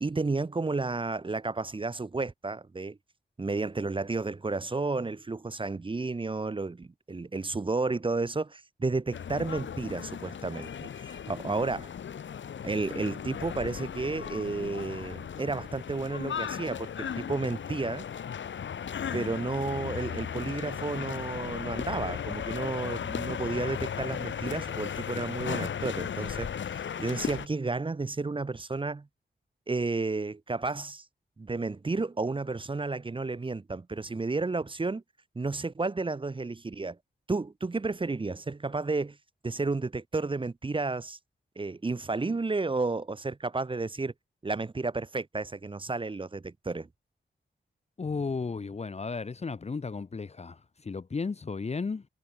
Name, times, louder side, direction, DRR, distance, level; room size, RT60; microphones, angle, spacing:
voice 1, 0.0-3.0 3.4-11.9 12.6-18.1 19.1-29.1 29.7-31.0 31.4-35.0 35.3-37.0 37.3-39.2 39.4-41.2 41.6-44.1 44.4-46.9, right 3 dB, 25° right, 0.8 m, -32 dB
sound 1, 9.1-27.5, left 8 dB, 85° left, 0.9 m, -36 dB
voice 2, 48.0-52.1, left 4 dB, 35° left, 0.8 m, -34 dB
wide cardioid pair, 140°, 19 cm